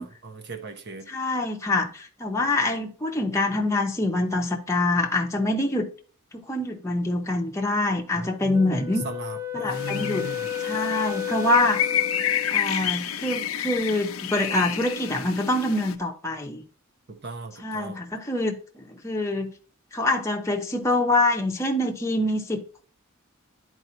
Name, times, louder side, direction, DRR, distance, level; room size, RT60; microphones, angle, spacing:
voice 1, 0.0-1.1 8.1-9.4 9.7-10.4 10.7-10.8 17.1-18.0, right 2 dB, 55° right, 1.0 m, -37 dB
voice 2, 1.1-5.9 6.3-9.0 9.5-10.3 10.6-11.8 12.5-16.6 17.6-19.5 19.9-22.8, left 2 dB, 15° left, 0.9 m, -25 dB
Wind instrument woodwind instrument, 8.5-12.6, left 10 dB, 10° right, 0.7 m, -32 dB
sound 1, 9.7-15.9, left 9 dB, 80° left, 0.7 m, -30 dB
10.5 x 4.6 x 2.7 m
head